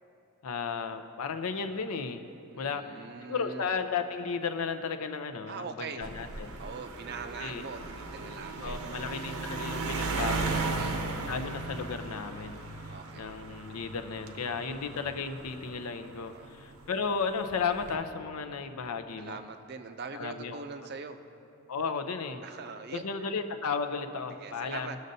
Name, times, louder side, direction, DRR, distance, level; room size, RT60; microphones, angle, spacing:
voice 1, 0.4-2.2 2.6-6.5 7.4-7.6 8.6-10.8 11.3-12.6 13.2-19.4 20.1-20.6 21.7-22.4 22.9-24.9, left 5 dB, 80° left, 8 dB, 0.6 m, -34 dB
voice 2, 2.5-3.7 5.5-6.1 6.6-9.0 10.5-11.0 12.4-12.6 12.9-13.3 14.5-14.8 16.3-16.5 19.2-21.2 22.4-23.0 24.4-25.0, right 5 dB, 45° right, 8 dB, 0.5 m, -42 dB
sound 1, 6.0-16.7 17.5-17.9, right 3 dB, 80° right, 0.8 m, -36 dB
19.0 x 6.4 x 2.7 m, 2.8 s
head